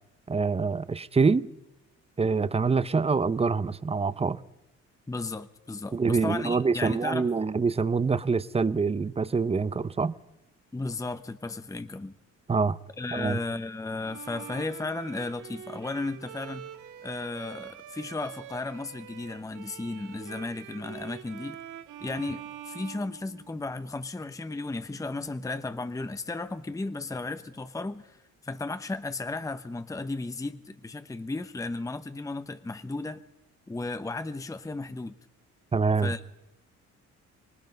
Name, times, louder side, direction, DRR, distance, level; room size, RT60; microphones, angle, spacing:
voice 1, 0.3-1.5 2.2-4.4 5.9-10.1 12.5-12.8 13.1-13.4 35.7-36.1, right 4 dB, 20° right, 0.8 m, -25 dB
voice 2, 5.1-7.3 10.7-12.1 13.0-16.7 17.0-21.6 22.0-28.2 28.4-33.2 33.7-35.1 36.0-36.3, left 3 dB, 10° left, 0.9 m, -34 dB
Bowed string instrument, 14.0-23.8, right 10 dB, 85° right, 1.8 m, -45 dB
25.5 x 19.5 x 5.3 m
cardioid pair, 90°, 30 cm